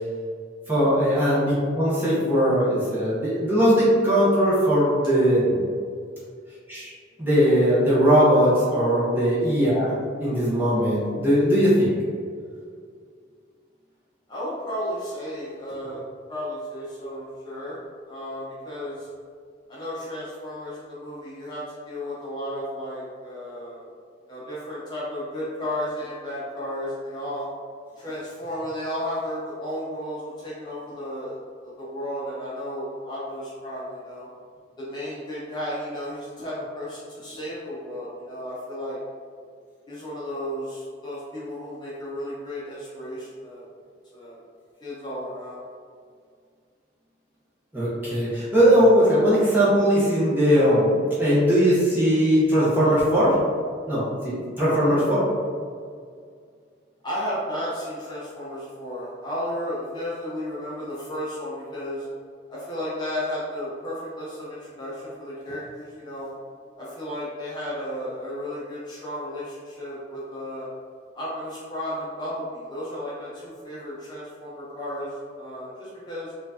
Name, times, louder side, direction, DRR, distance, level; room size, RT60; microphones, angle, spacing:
voice 1, 0.7-5.6 6.7-6.9 7.2-9.9 10.2-11.9 47.7-50.9 51.2-53.3 53.9-55.2, equal, 10° right, -9 dB, 0.9 m, -20 dB
voice 2, 14.3-16.0 16.3-17.8 18.1-19.1 19.7-23.9 24.3-27.5 28.0-34.3 34.8-39.0 39.9-43.7 44.1-44.4 44.8-45.6 57.0-62.1 62.5-66.3 66.8-70.7 71.1-76.3, equal, 20° left, -9 dB, 0.8 m, -33 dB
4.4 x 2.5 x 2.7 m, 2.1 s
head